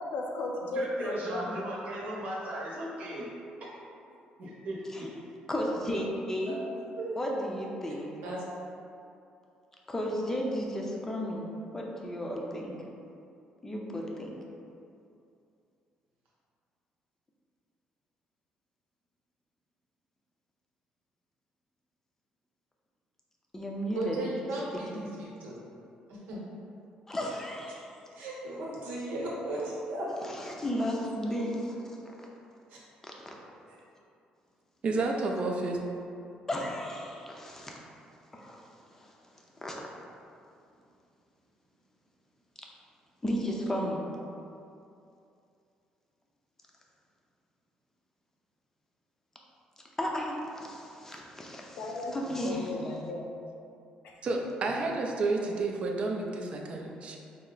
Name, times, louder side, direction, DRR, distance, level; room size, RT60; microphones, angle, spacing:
voice 1, 0.0-1.5 51.8-53.4 54.0-54.2, left 2 dB, 75° left, 0 dB, 0.5 m, -35 dB
voice 2, 0.7-3.3 4.6-4.8, right 1 dB, 60° right, -4 dB, 0.9 m, -37 dB
voice 3, 5.5-6.5 7.2-8.1 9.9-11.5 11.7-12.7 13.6-14.3 23.5-24.2 24.9-25.0 27.1-27.9 30.2-32.0 33.0-33.3 36.5-37.8 38.3-39.1 39.6-39.8 43.2-44.0 50.0-52.7, equal, 15° left, -1 dB, 0.5 m, -34 dB
voice 4, 23.9-25.6 26.1-26.4 27.7-27.8 28.1-30.1 32.7-32.8, right 2 dB, 85° right, -5 dB, 0.9 m, -36 dB
voice 5, 34.8-35.8 54.2-57.2, right 3 dB, 45° right, 1 dB, 0.4 m, -30 dB
4.4 x 2.1 x 3.8 m, 2.6 s
cardioid pair, 115°, 3 cm